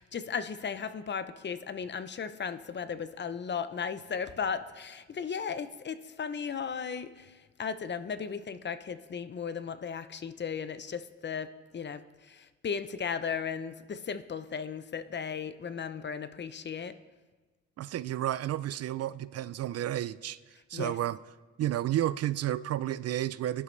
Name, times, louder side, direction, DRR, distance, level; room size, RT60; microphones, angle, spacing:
voice 1, 0.0-16.9 20.7-21.0, left 6 dB, 35° left, 0.7 m, -36 dB
voice 2, 17.8-20.4 20.7-21.2 21.6-23.6, right 12 dB, 55° right, 0.4 m, -31 dB
20.5 x 11.0 x 3.3 m
cardioid pair, 90°, 30 cm